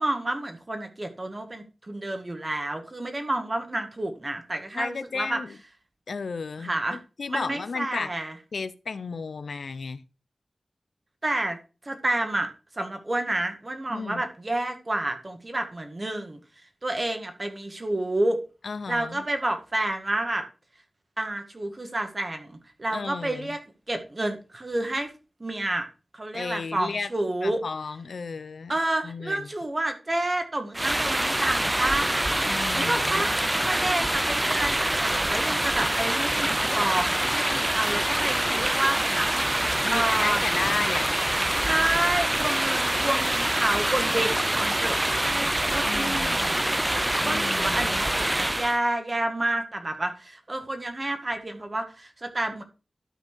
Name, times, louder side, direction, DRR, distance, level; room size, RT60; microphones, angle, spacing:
voice 1, 0.0-5.4 6.6-7.0 7.3-8.3 11.2-11.6 11.8-12.5 12.8-16.4 16.8-18.4 18.9-20.4 21.2-23.6 23.9-25.1 25.4-25.9 26.1-27.6 28.7-32.1 32.7-40.4 41.6-46.8 47.2-52.6, right 1 dB, 35° right, 1.9 m, -29 dB
voice 2, 4.7-5.6 6.1-8.1 8.5-10.0 13.9-14.2 18.6-19.2 22.9-23.6 26.3-27.1 27.4-28.7 29.0-29.5 32.4-33.3 39.8-41.1 45.8-46.4 47.2-48.0, left 4 dB, 90° left, 0.5 m, -34 dB
sound 1, 30.7-48.8, right 1 dB, 15° right, 0.4 m, -25 dB
12.0 x 4.5 x 4.5 m
wide cardioid pair, 70°, 0 cm